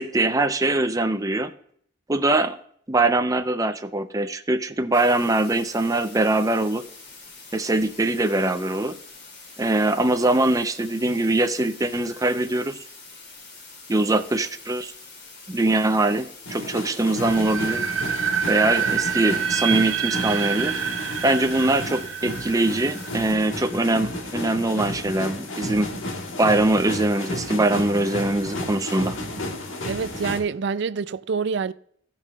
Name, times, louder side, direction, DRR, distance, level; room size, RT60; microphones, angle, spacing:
voice 1, 0.0-1.5 2.1-2.6 2.9-6.8 7.5-9.0 9.6-12.8 13.9-14.9 15.5-17.9 18.5-20.7 21.2-25.9 26.4-29.2, right 2 dB, 15° right, 0.6 m, -22 dB
sound 1, 4.9-23.3, left 3 dB, 60° left, 2.9 m, -45 dB
sound 2, 16.4-30.4, left 1 dB, 90° left, 1.5 m, -32 dB
sound 3, 17.2-24.1, right 8 dB, 85° right, 0.9 m, -27 dB
voice 2, 29.9-31.7, right 5 dB, 60° right, 0.4 m, -26 dB
17.0 x 5.8 x 2.4 m
head